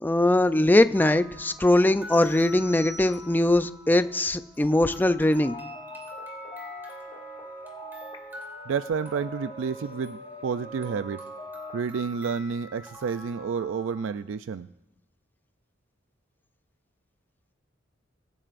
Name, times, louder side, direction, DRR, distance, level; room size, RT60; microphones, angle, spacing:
voice 1, 0.0-5.6, left 1 dB, 10° left, 11 dB, 0.4 m, -21 dB
sound 1, 0.9-14.0, left 1 dB, 10° right, 3.0 m, -47 dB
sound 2, 2.1-3.6, left 1 dB, 50° right, 2.6 m, -45 dB
sound 3, 5.4-11.8, equal, 30° left, 1.4 m, -42 dB
voice 2, 8.7-11.2 11.7-14.7, right 6 dB, 80° right, 12 dB, 0.4 m, -30 dB
25.0 x 12.5 x 2.5 m, 0.95 s
head